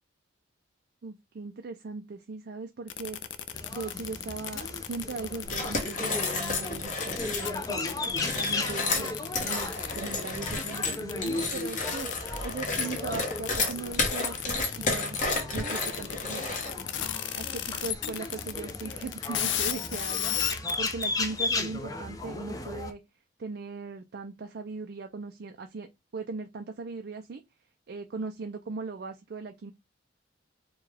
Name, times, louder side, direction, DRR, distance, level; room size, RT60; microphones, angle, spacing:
voice 1, 1.0-3.2 3.7-7.8 8.3-9.2 9.4-12.1 12.4-16.4 17.3-23.0 23.4-25.9 26.1-27.4 27.9-29.7, right 4 dB, 55° right, 0.4 m, -39 dB
sound 1, 2.9-21.0, left 11 dB, 70° left, 0.5 m, -35 dB
sound 2, 3.5-22.9, left 2 dB, 20° left, 0.5 m, -36 dB
sound 3, 5.5-7.5 8.1-17.0, left 3 dB, 40° left, 1.2 m, -31 dB
4.5 x 2.3 x 3.3 m
head